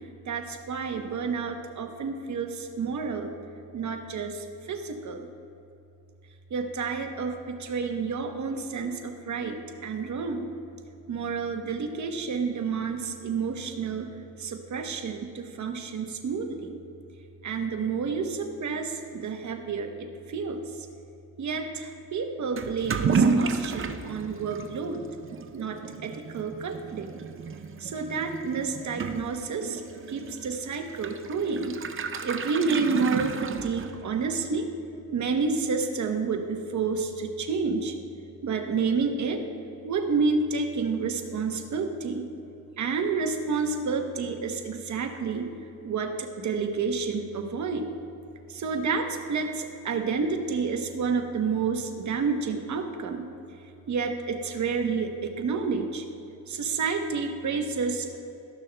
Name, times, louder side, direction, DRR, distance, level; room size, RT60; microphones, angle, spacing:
voice 1, 0.3-3.3 3.7-5.3 6.5-9.6 9.8-10.5 11.1-14.1 14.4-16.8 17.4-20.6 21.4-25.0 25.5-27.1 27.8-29.8 30.1-31.8 32.2-34.7 35.1-37.9 38.4-39.4 39.8-42.2 42.8-45.5 45.8-47.9 48.5-53.3 53.9-56.0 56.5-58.2, right 5 dB, 50° right, 5 dB, 0.9 m, -29 dB
Toilet flush / Liquid, 22.6-34.2, right 5 dB, 35° right, 0.6 m, -31 dB
13.0 x 6.2 x 2.2 m, 2.8 s
cardioid pair, 70°, 37 cm